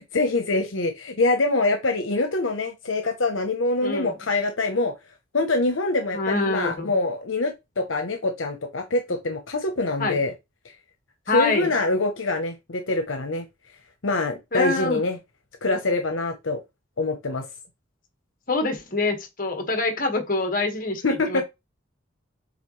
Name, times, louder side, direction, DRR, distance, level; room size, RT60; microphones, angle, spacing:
voice 1, 0.1-4.9 5.3-10.3 11.3-13.4 14.0-15.2 15.6-16.6 17.0-17.5 21.0-21.4, left 2 dB, 80° left, 1.0 m, -24 dB
voice 2, 3.8-4.1 6.1-6.9 10.0-10.2 11.3-11.7 14.5-15.0 18.5-21.0 21.3-21.4, left 3 dB, 45° left, 1.7 m, -25 dB
8.2 x 3.6 x 3.2 m
head